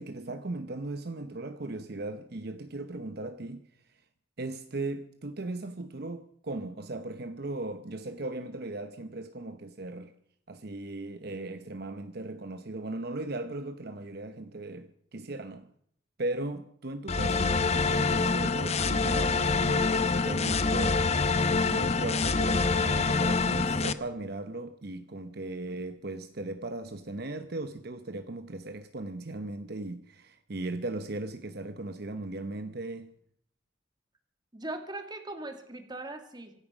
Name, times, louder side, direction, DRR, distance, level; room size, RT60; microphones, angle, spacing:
voice 1, 0.0-3.7 4.4-10.1 10.5-15.7 16.2-21.2 21.5-33.1, right 2 dB, 55° right, 0.9 m, -38 dB
sound 1, 17.1-23.9, left 4 dB, 35° left, 0.8 m, -26 dB
voice 2, 34.5-36.5, right 2 dB, 25° right, 2.1 m, -39 dB
25.0 x 9.3 x 6.2 m
head